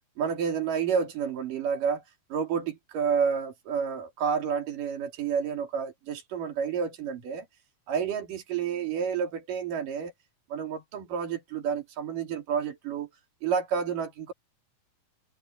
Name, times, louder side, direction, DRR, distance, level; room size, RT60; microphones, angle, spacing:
voice 1, 0.2-2.0 2.3-7.5 7.9-10.1 10.5-13.1 13.4-14.3, right 7 dB, 70° right, 4.6 m, -30 dB
omnidirectional pair, 4.0 m